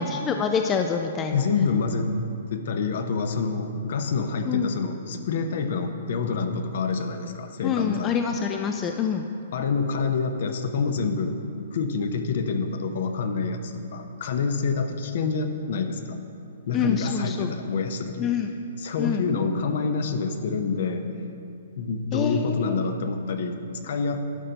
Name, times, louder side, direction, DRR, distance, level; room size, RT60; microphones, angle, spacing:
voice 1, 0.0-1.5 4.5-4.7 7.6-9.2 16.7-17.5 18.2-18.5 19.0-19.2 22.1-22.8, left 6 dB, 20° left, 5 dB, 0.3 m, -26 dB
voice 2, 1.3-2.1 2.5-8.2 9.5-11.4 11.7-16.2 16.7-18.3 18.8-21.1 21.8-24.2, left 4 dB, 60° left, 7 dB, 0.7 m, -27 dB
11.0 x 3.9 x 5.6 m, 2.6 s
hypercardioid pair, 150°, 0 cm